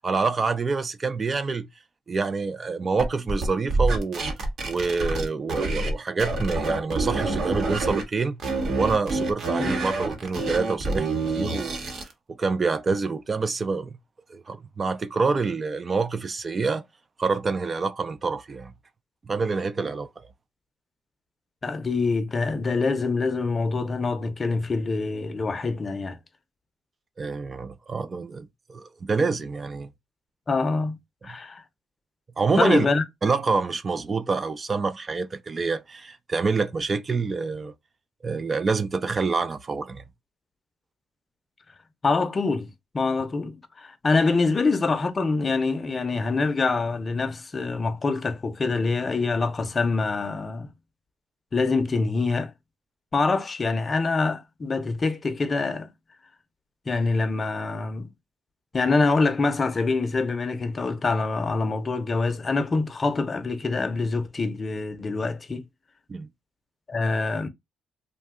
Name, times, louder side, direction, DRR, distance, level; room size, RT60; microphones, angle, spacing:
voice 1, 0.0-1.7 2.1-4.2 4.6-8.4 8.8-12.1 12.4-13.9 14.3-16.8 17.2-18.7 19.3-20.1 27.2-29.9 32.4-32.9 33.2-37.7 38.2-40.0 66.1-66.3, right 4 dB, 35° right, 0.3 m, -27 dB
sound 1, 3.0-5.9 6.2-8.0 8.4-12.1, right 2 dB, 65° right, 1.0 m, -27 dB
voice 2, 21.6-26.2 30.5-31.0 31.2-31.6 32.6-33.0 42.0-50.7 51.5-52.5 53.1-55.9 56.9-58.1 58.7-65.6 66.9-67.5, left 3 dB, 35° left, 0.6 m, -25 dB
2.6 x 2.2 x 3.5 m
cardioid pair, 90°, 0 cm